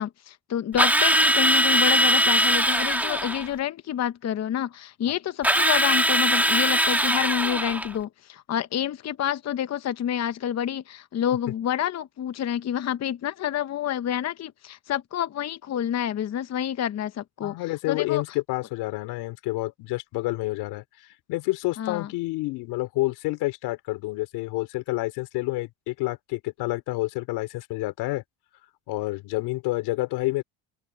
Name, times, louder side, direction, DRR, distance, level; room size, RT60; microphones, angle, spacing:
voice 1, 0.0-18.2 21.8-22.1, left 10 dB, 45° left, 0.9 m, -28 dB
Drill, 0.8-3.5 5.4-7.9, equal, 5° right, 2.6 m, -21 dB
voice 2, 17.4-20.8 21.3-28.2 28.9-30.4, left 20 dB, 80° left, 3.3 m, -29 dB
open air
supercardioid pair, 95°, 38 cm